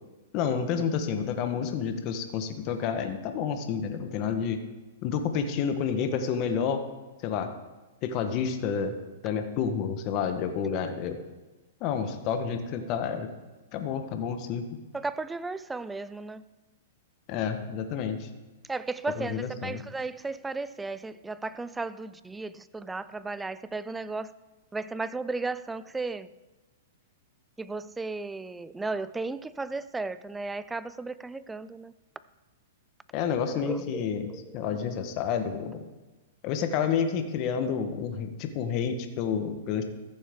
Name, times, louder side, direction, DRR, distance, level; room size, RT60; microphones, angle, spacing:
voice 1, 0.3-4.6 5.0-6.8 7.2-7.5 8.0-8.9 9.2-11.2 11.8-13.3 13.7-14.6 17.3-18.3 19.2-19.8 33.1-34.3 34.5-35.8 36.4-39.8, left 7 dB, 40° left, 7 dB, 1.0 m, -29 dB
voice 2, 14.9-16.4 18.7-24.3 24.7-26.3 27.6-31.9 33.5-34.6, right 3 dB, 10° right, 16 dB, 0.3 m, -35 dB
14.5 x 7.0 x 3.6 m, 1.1 s
hypercardioid pair, 125°, 0 cm